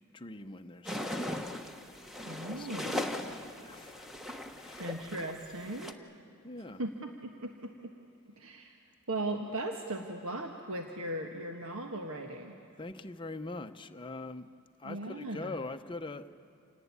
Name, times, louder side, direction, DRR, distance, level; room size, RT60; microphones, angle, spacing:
voice 1, 0.1-1.4 1.9-2.1 2.5-4.1 4.5-4.9 6.4-6.8 12.8-14.5 14.8-16.3, left 2 dB, 20° left, 7 dB, 0.8 m, -43 dB
sound 1, 0.8-5.9, left 1 dB, ahead, 1.1 m, -39 dB
voice 2, 2.2-3.1 4.8-5.9 6.8-6.9 7.2-7.7 8.4-8.7 9.1-12.6 14.8-15.5, right 1 dB, 65° right, 3 dB, 1.5 m, -38 dB
28.0 x 18.5 x 9.6 m, 2.8 s
head